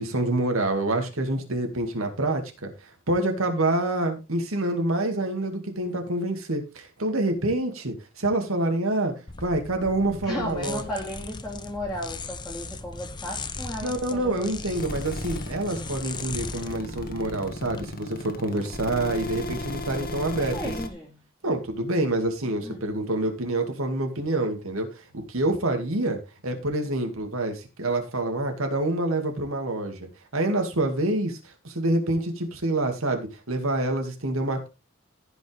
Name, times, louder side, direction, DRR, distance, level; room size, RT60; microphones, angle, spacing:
voice 1, 0.0-2.7 3.1-9.1 9.4-10.8 13.8-20.6 21.4-34.7, right 2 dB, 75° right, 4 dB, 2.2 m, -27 dB
sound 1, 9.3-17.8, left 3 dB, 20° left, 0.7 m, -38 dB
voice 2, 10.2-14.8 20.5-21.2 22.6-22.8, equal, ahead, -7 dB, 2.4 m, -35 dB
sound 2, 14.8-20.9, left 1 dB, 45° left, 1.5 m, -35 dB
15.5 x 5.5 x 3.4 m, 0.29 s
head